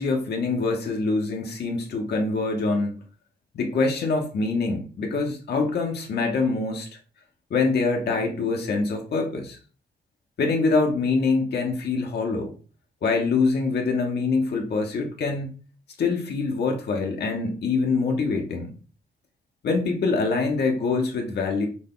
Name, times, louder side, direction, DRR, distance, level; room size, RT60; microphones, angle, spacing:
voice 1, 0.0-3.0 3.5-6.9 7.5-9.6 10.4-12.5 13.0-15.5 16.0-18.7 19.6-21.7, left 4 dB, 75° left, 2 dB, 1.0 m, -24 dB
6.3 x 2.3 x 3.7 m, 0.38 s
wide cardioid pair, 170°, 17 cm